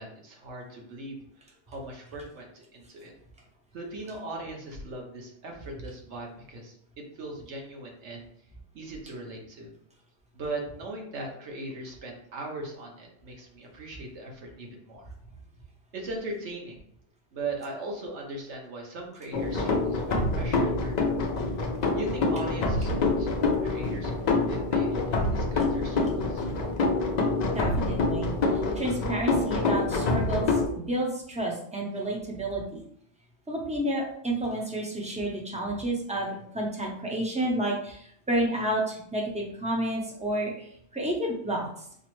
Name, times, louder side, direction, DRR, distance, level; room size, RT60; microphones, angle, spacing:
voice 1, 0.0-3.1 3.7-8.3 8.7-9.7 10.3-15.1 15.9-16.8 17.3-21.1 21.9-26.5, right 2 dB, 65° right, 0 dB, 1.2 m, -39 dB
sound 1, 19.3-30.7, left 3 dB, 70° left, 0.4 m, -26 dB
voice 2, 27.5-30.6 30.9-32.8 33.5-41.7, right 1 dB, 10° right, -1 dB, 0.4 m, -30 dB
4.7 x 2.1 x 3.0 m, 0.67 s
omnidirectional pair, 1.3 m